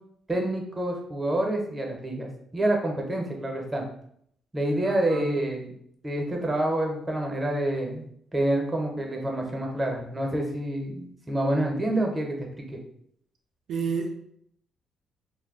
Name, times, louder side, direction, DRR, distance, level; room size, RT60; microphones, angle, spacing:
voice 1, 0.3-3.8 4.5-5.7 6.0-8.1 8.3-12.8, right 1 dB, 20° right, 1 dB, 0.7 m, -27 dB
voice 2, 4.8-5.5 13.7-14.1, right 5 dB, 75° right, 2 dB, 0.4 m, -31 dB
2.2 x 2.1 x 3.7 m, 0.68 s
cardioid pair, 90°, 0 cm